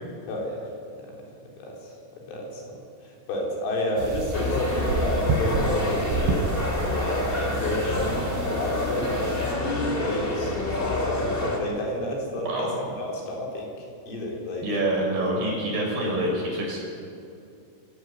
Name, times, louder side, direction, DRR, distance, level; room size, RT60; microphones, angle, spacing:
voice 1, 0.3-1.1 1.4-6.5 7.0-9.1 9.5-10.6 10.9-11.3 11.6-14.7 15.4-15.6, left 1 dB, 80° left, -1 dB, 6.6 m, -31 dB
sound 1, 4.0-9.5, right 4 dB, 85° right, 5.1 m, -31 dB
sound 2, 4.3-11.6, left 2 dB, 25° left, 1.3 m, -27 dB
voice 2, 12.4-12.8 14.6-16.8, right 1 dB, 45° right, -2 dB, 7.3 m, -26 dB
23.0 x 16.5 x 9.6 m, 2.5 s
omnidirectional pair, 5.7 m